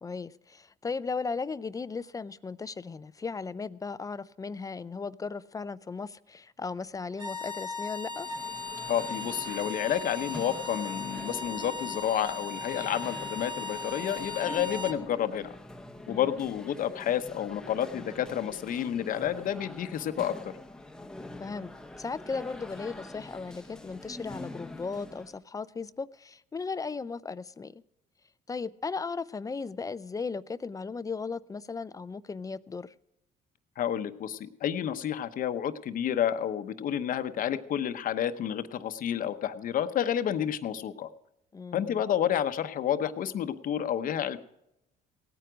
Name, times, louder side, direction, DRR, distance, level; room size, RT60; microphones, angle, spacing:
voice 1, 0.0-8.3 16.1-16.3 21.4-21.7 22.0-27.8 28.5-32.9 41.5-42.0, left 4 dB, 20° left, 0.4 m, -36 dB
sound 1, 7.1-15.0, left 3 dB, 25° right, 1.4 m, -38 dB
sound 2, 8.1-25.4, left 1 dB, 5° left, 0.8 m, -45 dB
voice 2, 8.9-15.5 16.1-20.6 33.8-41.1 41.7-44.4, left 10 dB, 55° left, 0.9 m, -30 dB
17.5 x 9.3 x 5.0 m
cardioid pair, 110°, 17 cm